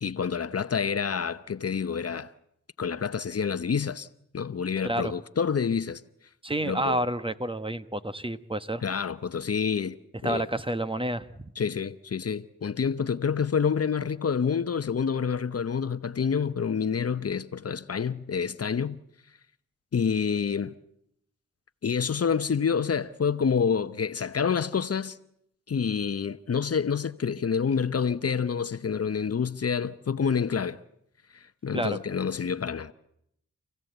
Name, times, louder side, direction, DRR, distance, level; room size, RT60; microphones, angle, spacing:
voice 1, 0.0-2.3 2.8-4.1 4.3-6.0 6.6-7.0 8.8-10.0 10.2-10.5 11.6-19.0 19.9-20.7 21.8-25.2 25.7-30.8 31.3-32.9, left 6 dB, 50° left, 0.9 m, -28 dB
voice 2, 6.4-8.8 10.2-11.5 31.7-32.0, right 1 dB, 15° right, 1.2 m, -29 dB
28.0 x 16.0 x 8.0 m
cardioid pair, 45°, 32 cm